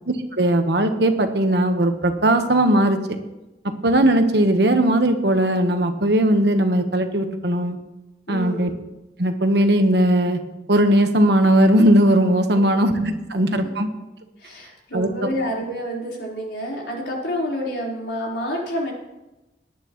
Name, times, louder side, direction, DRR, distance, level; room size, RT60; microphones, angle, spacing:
voice 1, 0.1-3.0 3.8-7.8 8.3-8.7 9.2-10.4 10.7-13.9 14.9-15.1, right 1 dB, 70° right, 6 dB, 1.3 m, -18 dB
voice 2, 8.3-8.7 14.4-18.9, equal, 80° left, -3 dB, 4.4 m, -28 dB
18.0 x 10.5 x 3.1 m, 0.98 s
head